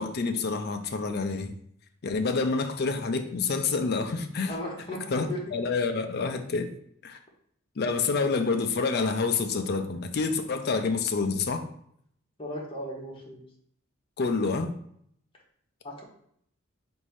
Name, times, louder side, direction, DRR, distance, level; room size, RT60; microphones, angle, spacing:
voice 1, 0.0-1.5 2.0-4.6 5.1-6.7 7.0-7.2 7.8-11.7 14.2-14.7, left 4 dB, 50° left, 6 dB, 0.4 m, -28 dB
voice 2, 4.5-5.4 12.4-13.4 15.8-16.0, left 1 dB, 25° left, -3 dB, 1.0 m, -36 dB
4.1 x 2.7 x 4.7 m, 0.68 s
head